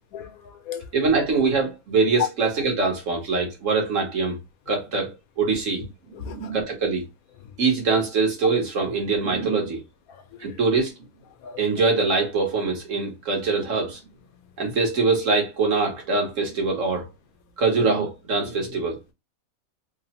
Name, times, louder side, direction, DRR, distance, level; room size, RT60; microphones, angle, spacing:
voice 1, 0.1-0.9 2.2-2.3 4.7-4.8 6.1-6.5 7.4-7.5 10.1-10.6 11.4-11.6, left 8 dB, 85° left, 1.1 m, -33 dB
voice 2, 0.9-4.4 4.7-7.0 7.6-9.8 10.4-10.9 11.6-14.0 14.6-17.1 17.6-19.1, right 4 dB, 65° right, 1.4 m, -23 dB
3.1 x 2.1 x 2.8 m
omnidirectional pair, 1.5 m